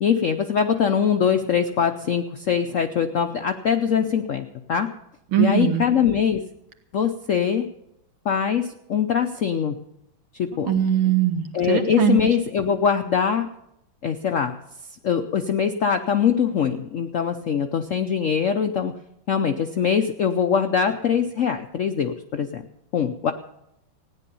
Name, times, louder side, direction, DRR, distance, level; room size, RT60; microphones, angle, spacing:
voice 1, 0.0-4.9 5.4-6.4 6.9-7.7 8.3-9.7 10.4-10.7 11.5-13.5 14.0-14.6 15.0-19.0 19.3-22.6 22.9-23.3, left 7 dB, 70° left, 7 dB, 0.7 m, -22 dB
voice 2, 5.3-5.9 10.5-12.2, right 8 dB, 85° right, 5 dB, 2.3 m, -21 dB
16.0 x 9.9 x 6.9 m, 0.82 s
omnidirectional pair, 2.2 m